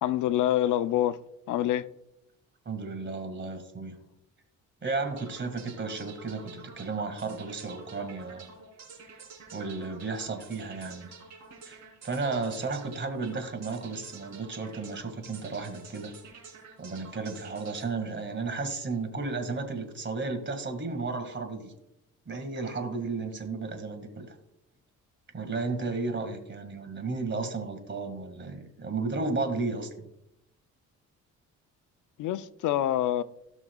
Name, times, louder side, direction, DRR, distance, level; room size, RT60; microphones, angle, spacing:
voice 1, 0.0-1.2 1.5-1.9 32.2-33.2, left 12 dB, 80° left, 0.6 m, -26 dB
voice 2, 2.7-4.0 4.8-8.4 9.5-11.1 11.7-16.1 16.8-21.7 22.3-24.3 25.3-29.9, right 3 dB, 40° right, 1.9 m, -33 dB
sound 1, 5.0-19.1, right 4 dB, 70° right, 3.6 m, -49 dB
17.0 x 6.0 x 2.3 m
cardioid pair, 90°, 30 cm